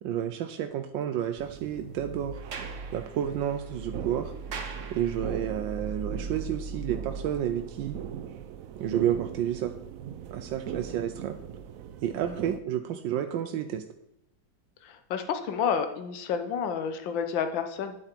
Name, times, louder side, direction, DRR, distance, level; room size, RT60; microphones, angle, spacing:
voice 1, 0.0-2.4 2.9-4.3 4.9-8.0 8.8-9.8 10.3-11.4 12.0-13.8, right 10 dB, 85° right, 7 dB, 1.4 m, -30 dB
sound 1, 1.4-12.6, right 6 dB, 70° right, 0.8 m, -39 dB
Sliding door, 2.3-5.6, right 5 dB, 45° right, 1.3 m, -44 dB
voice 2, 14.8-18.0, left 7 dB, 85° left, 8 dB, 1.7 m, -30 dB
10.5 x 8.8 x 4.5 m, 0.83 s
omnidirectional pair, 2.0 m